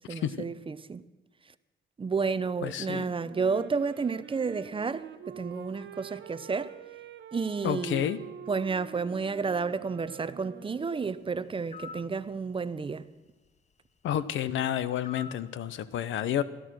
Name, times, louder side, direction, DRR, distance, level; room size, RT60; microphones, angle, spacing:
voice 1, 0.1-1.0 2.0-6.7 7.3-8.0 8.5-13.1, right 5 dB, 25° right, 0.6 m, -31 dB
voice 2, 2.6-3.0 7.6-8.2 14.0-16.4, left 10 dB, 75° left, 0.8 m, -30 dB
Wind instrument woodwind instrument, 3.1-11.5, right 8 dB, 65° right, 1.0 m, -47 dB
sound 1, 11.7-12.1 15.0-15.4, left 6 dB, 35° left, 0.9 m, -43 dB
16.5 x 12.5 x 6.3 m
cardioid pair, 90°, 20 cm